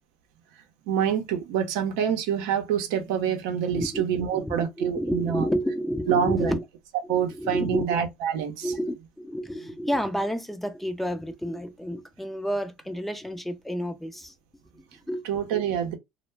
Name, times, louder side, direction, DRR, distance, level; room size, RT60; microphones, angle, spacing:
voice 1, 0.9-5.5 6.1-6.6 7.1-8.7 15.2-16.0, right 8 dB, 80° right, 0.6 m, -26 dB
voice 2, 3.7-4.0 4.3-6.6 7.0-8.0 8.6-14.3 14.7-15.2, equal, 5° left, 0.5 m, -30 dB
2.1 x 2.0 x 3.2 m
supercardioid pair, 85°, 3 cm